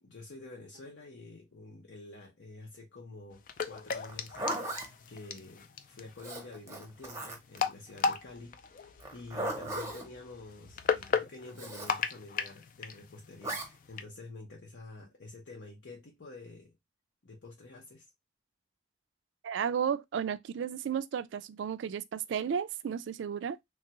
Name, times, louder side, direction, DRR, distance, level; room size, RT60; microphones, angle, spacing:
voice 1, 0.0-4.8 5.1-16.7 17.2-18.0, left 2 dB, 80° left, 0.8 m, -49 dB
sound 1, 3.3-14.0, left 5 dB, 45° left, 0.3 m, -36 dB
Zipper (clothing), 4.0-4.9 6.2-7.6 9.0-10.1 11.6-12.0 13.4-13.7, right 1 dB, 15° right, 0.7 m, -37 dB
voice 2, 19.4-23.6, right 7 dB, 85° right, 0.3 m, -33 dB
3.2 x 2.3 x 2.8 m
head